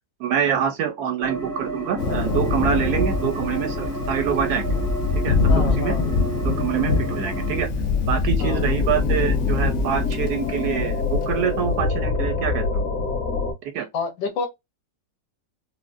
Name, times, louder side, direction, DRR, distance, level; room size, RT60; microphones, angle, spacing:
voice 1, 0.2-4.7 5.2-6.0 6.4-7.7 8.1-12.8 13.7-13.9, right 8 dB, 70° right, 1.0 m, -25 dB
sound 1, 1.2-7.6, right 3 dB, 20° right, 0.6 m, -32 dB
Thunder, 2.0-11.6, left 4 dB, 65° left, 0.7 m, -24 dB
voice 2, 5.5-6.0 8.4-8.6 13.9-14.5, left 5 dB, 85° left, 1.6 m, -28 dB
sound 2, 8.4-13.5, left 3 dB, 45° left, 1.4 m, -25 dB
4.4 x 2.1 x 2.4 m
omnidirectional pair, 2.0 m